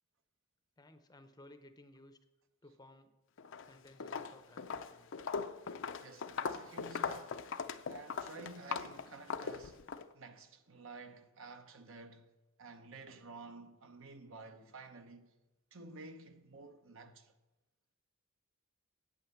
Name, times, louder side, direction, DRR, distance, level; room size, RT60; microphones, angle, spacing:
voice 1, 0.8-2.2 2.6-3.1 3.7-5.1, left 1 dB, 20° left, 0.6 m, -58 dB
Walk footsteps, 3.4-3.7 4.0-10.0, left 5 dB, 60° left, 0.5 m, -40 dB
voice 2, 6.0-7.5 7.9-9.9 10.1-12.3 12.6-15.3 15.7-17.3, right 3 dB, 65° right, 0.9 m, -52 dB
8.8 x 8.5 x 7.2 m
head